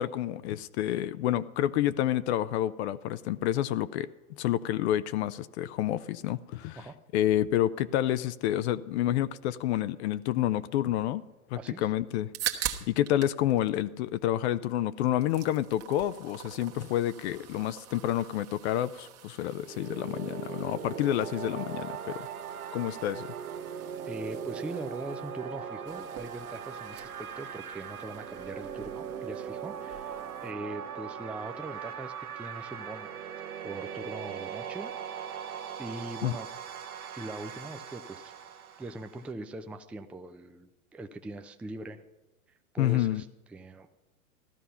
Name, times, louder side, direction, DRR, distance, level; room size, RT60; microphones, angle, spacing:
voice 1, 0.0-6.9 7.1-11.2 11.5-12.3 12.6-22.3 22.7-23.3 36.2-36.3 42.8-43.2, left 12 dB, 50° left, 15 dB, 0.6 m, -29 dB
voice 2, 11.5-11.9 23.8-33.1 33.6-34.9 35.8-36.5 37.1-38.3 38.8-42.0 42.7-43.9, right 2 dB, 5° right, 7 dB, 0.4 m, -41 dB
sound 1, 12.1-13.4 13.7-14.7 15.0-30.5, right 11 dB, 35° right, 1.4 m, -44 dB
sound 2, 19.4-39.3, right 8 dB, 80° right, 1.2 m, -40 dB
15.0 x 12.5 x 5.6 m, 1.0 s
hypercardioid pair, 105°, 43 cm